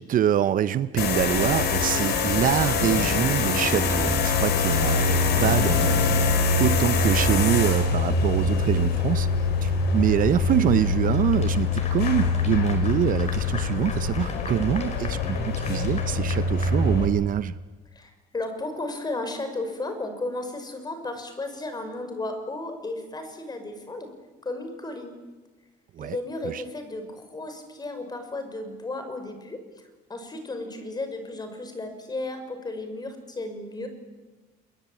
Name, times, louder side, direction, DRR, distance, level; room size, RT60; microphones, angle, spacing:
voice 1, 0.0-9.3 9.6-17.5 26.0-26.2 26.4-26.6, right 10 dB, 55° right, 15 dB, 0.8 m, -25 dB
sound 1, 1.0-17.1, left 4 dB, 75° left, 5.2 m, -24 dB
Clapping / Applause, 11.1-17.5, left 5 dB, 40° left, 4.9 m, -41 dB
voice 2, 17.9-24.1 24.4-25.2 26.0-33.9, left 2 dB, 25° left, 7 dB, 6.0 m, -34 dB
28.0 x 22.0 x 9.0 m, 1.2 s
cardioid pair, 110°, 17 cm